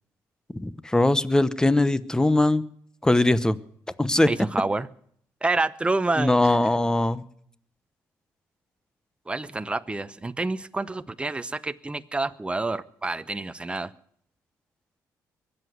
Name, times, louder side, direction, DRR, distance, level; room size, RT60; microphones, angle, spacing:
voice 1, 0.5-2.6 3.0-3.6 4.0-4.3 6.2-7.2, left 2 dB, 10° left, 16 dB, 0.9 m, -21 dB
voice 2, 4.3-4.9 5.4-6.6 9.3-13.9, right 2 dB, 15° right, 13 dB, 0.7 m, -28 dB
22.5 x 8.0 x 8.0 m, 0.64 s
cardioid pair, 85°, 7 cm